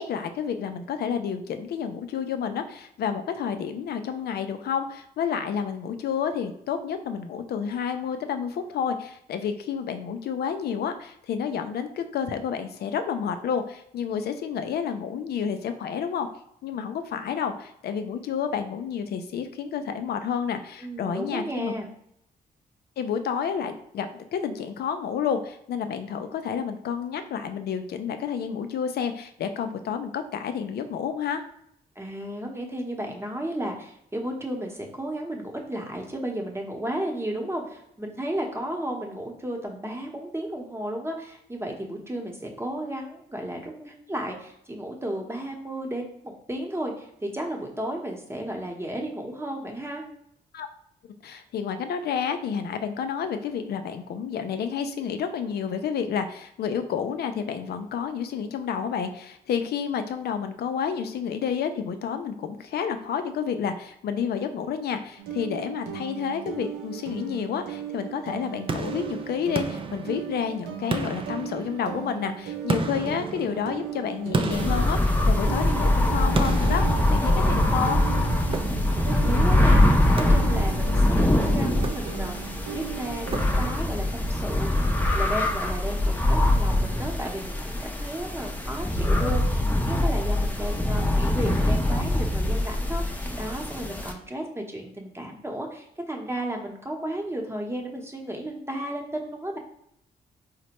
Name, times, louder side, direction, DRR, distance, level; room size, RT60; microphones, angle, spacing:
voice 1, 0.0-16.3 16.6-21.7 23.0-31.4 50.5-50.7 51.2-78.0, left 7 dB, 70° left, 8 dB, 0.4 m, -30 dB
voice 2, 20.8-21.9 32.0-50.0 78.5-82.4 82.7-99.6, right 1 dB, 15° right, 1 dB, 0.9 m, -33 dB
sound 1, 65.2-83.7, right 9 dB, 90° right, 0.5 m, -38 dB
sound 2, 68.7-70.5 70.9-72.1 72.7-75.7 76.3-77.8 78.5-79.2 80.2-80.9 81.7-82.5 83.3-84.0, right 3 dB, 30° right, 0.4 m, -33 dB
sound 3, 74.5-94.1, left 1 dB, 10° left, 0.6 m, -23 dB
4.1 x 2.1 x 2.9 m, 0.73 s
cardioid pair, 65°, 17 cm